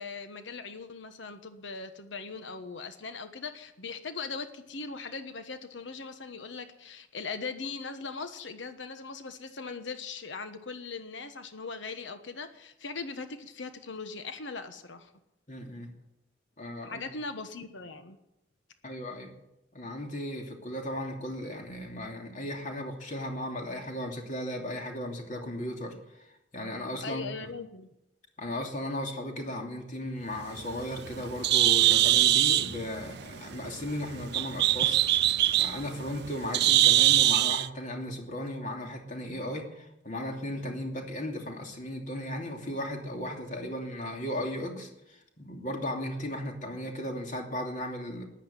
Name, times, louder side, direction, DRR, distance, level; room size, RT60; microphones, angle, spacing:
voice 1, 0.0-15.1 16.8-18.2 27.0-27.9, left 4 dB, 75° left, 9 dB, 1.2 m, -40 dB
voice 2, 15.5-15.9 16.6-17.0 18.8-19.4 19.7-26.3 26.5-27.5 28.4-35.0 35.6-48.2, left 1 dB, 40° left, 2 dB, 2.8 m, -36 dB
Bird, 30.4-37.7, right 14 dB, 60° right, 0.6 m, -24 dB
14.0 x 10.5 x 9.2 m, 0.87 s
head